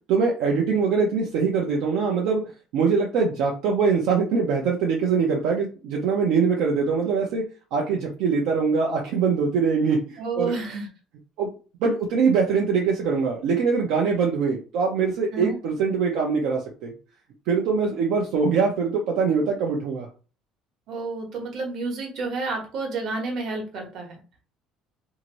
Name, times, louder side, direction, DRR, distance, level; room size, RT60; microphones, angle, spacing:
voice 1, 0.1-2.4 2.7-7.4 7.7-10.5 11.4-11.5 11.8-16.9 17.5-20.1, right 5 dB, 70° right, -1 dB, 0.6 m, -23 dB
voice 2, 10.2-10.9 15.3-15.6 20.9-24.2, right 3 dB, 50° right, 2 dB, 1.0 m, -30 dB
2.7 x 2.5 x 3.0 m, 0.35 s
cardioid pair, 145°, 0 cm